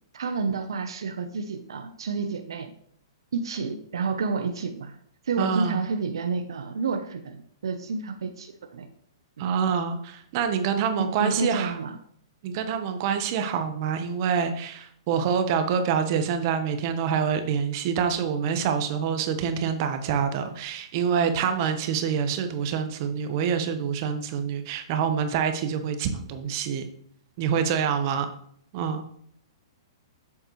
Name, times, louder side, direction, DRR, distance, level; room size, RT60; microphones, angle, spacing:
voice 1, 0.1-2.7 3.3-5.0 5.2-8.9 11.0-12.0, right 4 dB, 75° right, 7 dB, 0.8 m, -30 dB
voice 2, 5.4-5.8 9.4-11.8 12.4-26.9 27.4-28.3 28.7-29.0, right 7 dB, 45° right, 8 dB, 1.1 m, -26 dB
8.0 x 7.2 x 3.2 m, 0.64 s
hypercardioid pair, 125°, 3 cm